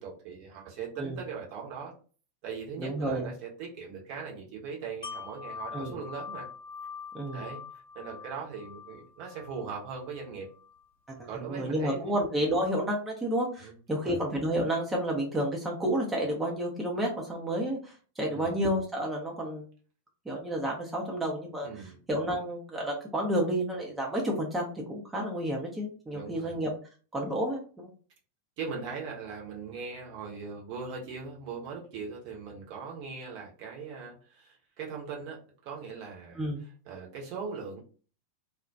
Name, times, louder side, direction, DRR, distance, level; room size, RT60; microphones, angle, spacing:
voice 1, 0.0-1.9 2.4-6.5 7.3-10.5 11.3-12.1 13.6-14.2 18.2-18.5 21.6-22.0 26.1-26.6 28.6-36.4 36.9-37.8, right 5 dB, 45° right, -1 dB, 0.8 m, -40 dB
voice 2, 2.8-3.3 5.7-6.0 7.1-7.5 11.2-19.6 20.3-26.7 27.1-27.9 36.4-36.6, right 1 dB, 10° right, -2 dB, 0.6 m, -31 dB
Wind chime, 5.0-10.8 11.2-11.3, left 6 dB, 60° left, 0.8 m, -44 dB
2.2 x 2.1 x 2.6 m, 0.39 s
figure-of-eight pair, 90°, 0 cm